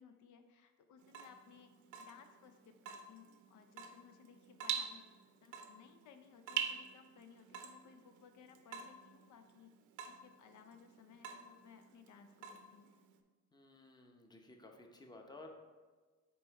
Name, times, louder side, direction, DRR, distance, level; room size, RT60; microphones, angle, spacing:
voice 1, 0.0-1.7 2.0-5.1 5.4-9.7 10.1-12.9, left 6 dB, 75° left, 7 dB, 0.6 m, -60 dB
Water tap faucet / Drip, 1.0-13.2, right 8 dB, 80° right, 0.6 m, -46 dB
voice 2, 13.5-15.5, left 2 dB, 15° left, 3 dB, 0.8 m, -55 dB
5.4 x 4.5 x 4.1 m, 1.4 s
cardioid pair, 90°, 30 cm